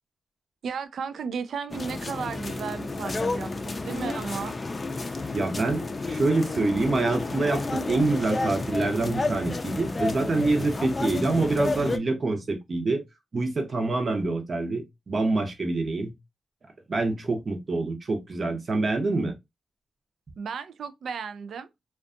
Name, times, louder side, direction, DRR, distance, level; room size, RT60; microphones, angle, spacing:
voice 1, 0.6-4.5 20.4-21.7, right 6 dB, 75° right, 0.3 m, -34 dB
sound 1, 1.7-12.0, left 3 dB, 30° left, 0.4 m, -31 dB
voice 2, 5.3-13.0 13.3-16.1 16.9-19.3, right 3 dB, 45° right, 0.7 m, -26 dB
2.6 x 2.2 x 2.5 m
cardioid pair, 85°, 0 cm